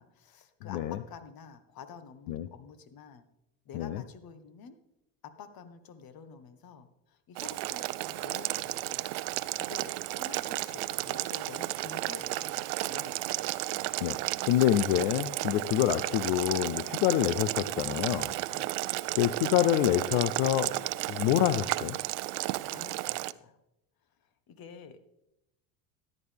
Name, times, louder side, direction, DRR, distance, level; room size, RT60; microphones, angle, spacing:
voice 1, 0.0-3.2 3.6-4.8 5.2-9.1 9.6-13.9 18.5-18.7 22.7-23.6 24.5-25.0, left 6 dB, 50° left, 10 dB, 1.5 m, -49 dB
voice 2, 0.7-1.0 2.3-2.5 3.7-4.0 14.0-14.2 14.4-18.3 19.2-20.7 21.1-22.0, left 12 dB, 75° left, 12 dB, 0.7 m, -26 dB
Boiling, 7.4-23.3, right 19 dB, 75° right, 0.6 m, -33 dB
14.0 x 11.0 x 3.5 m, 0.87 s
supercardioid pair, 95°, 46 cm